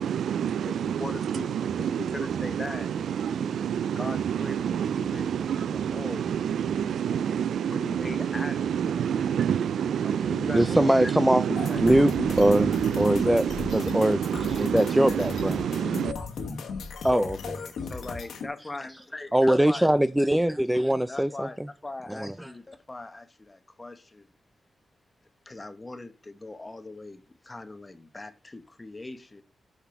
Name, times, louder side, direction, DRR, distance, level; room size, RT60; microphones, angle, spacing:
voice 1, 0.0-16.1, right 8 dB, 90° right, 0.3 m, -28 dB
voice 2, 0.6-1.9 2.1-2.9 3.9-5.3 5.6-6.2 7.7-8.7 10.0-10.9 11.7-11.9 17.8-19.9 21.1-24.3 25.4-29.4, left 2 dB, 20° left, 1.1 m, -40 dB
voice 3, 10.5-11.4 11.8-12.1 12.4-12.7 13.0-13.4 13.7-14.2 14.6-15.6 17.0-17.9 19.3-21.7 22.1-22.5, right 1 dB, 5° right, 0.4 m, -22 dB
sound 1, 11.6-18.5, left 4 dB, 90° left, 1.3 m, -36 dB
6.1 x 5.8 x 5.8 m
cardioid pair, 100°, 0 cm